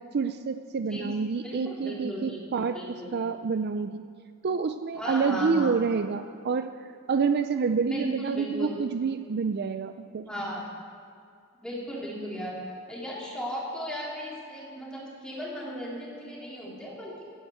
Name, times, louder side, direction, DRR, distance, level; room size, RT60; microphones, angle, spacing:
voice 1, 0.0-4.0 4.4-10.3, right 5 dB, 50° right, 9 dB, 0.4 m, -28 dB
voice 2, 1.4-3.1 4.9-5.8 7.8-8.8 10.3-10.6 11.6-12.6 12.9-17.2, equal, 5° left, -5 dB, 3.2 m, -36 dB
12.0 x 9.4 x 8.6 m, 2.3 s
head